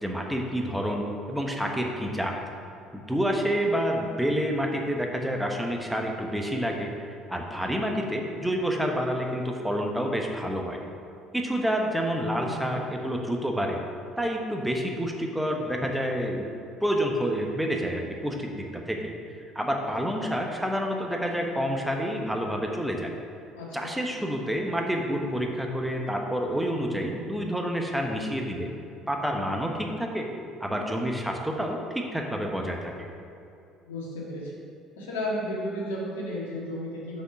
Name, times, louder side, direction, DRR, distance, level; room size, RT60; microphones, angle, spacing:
voice 1, 0.0-2.4 2.9-6.9 7.3-10.8 11.3-13.8 14.2-19.0 19.5-23.1 23.7-28.7 29.1-30.3 30.6-32.9, equal, 5° right, 1 dB, 1.0 m, -28 dB
voice 2, 12.4-12.8 23.5-23.9 33.8-34.5 34.9-37.2, equal, 80° left, -4 dB, 1.7 m, -33 dB
6.4 x 5.2 x 5.9 m, 2.6 s
hypercardioid pair, 60°, 0 cm